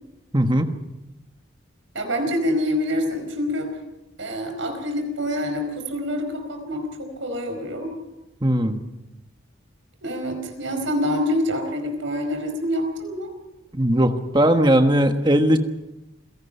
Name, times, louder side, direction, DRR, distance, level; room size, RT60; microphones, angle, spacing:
voice 1, 0.3-0.7 8.4-8.8 13.7-15.6, equal, 20° right, 6 dB, 1.3 m, -18 dB
voice 2, 1.9-3.7 4.2-7.9 10.0-13.3, equal, 70° right, 5 dB, 4.9 m, -26 dB
28.0 x 17.5 x 5.5 m, 0.98 s
head